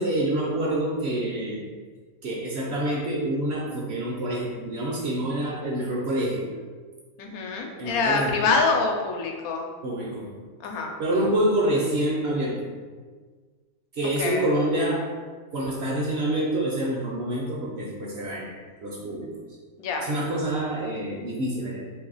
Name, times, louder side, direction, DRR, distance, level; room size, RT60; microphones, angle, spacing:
voice 1, 0.0-1.6 2.2-6.5 7.8-8.4 9.8-10.4 11.0-12.7 13.9-15.1 15.5-18.5 18.8-19.3 20.0-21.9, right 1 dB, 60° right, -3 dB, 0.7 m, -27 dB
voice 2, 7.2-9.7 10.6-10.9 14.2-14.4 19.8-20.0, left 4 dB, 85° left, 2 dB, 1.0 m, -25 dB
2.9 x 2.7 x 3.8 m, 1.5 s
omnidirectional pair, 1.5 m